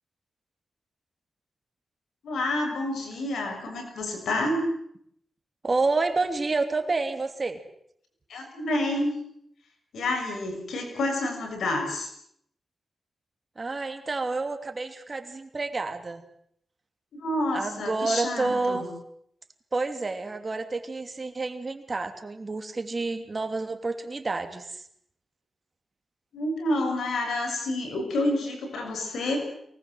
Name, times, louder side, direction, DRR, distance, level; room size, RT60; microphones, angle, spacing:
voice 1, 2.2-4.7 8.3-9.2 9.9-12.1 17.2-18.9 26.3-29.4, left 1 dB, 90° left, 4 dB, 6.6 m, -28 dB
voice 2, 5.6-7.6 13.6-16.2 17.5-18.9 19.7-24.8, right 3 dB, 40° right, 7 dB, 2.9 m, -29 dB
23.5 x 20.0 x 7.9 m, 0.71 s
cardioid pair, 70°, 0 cm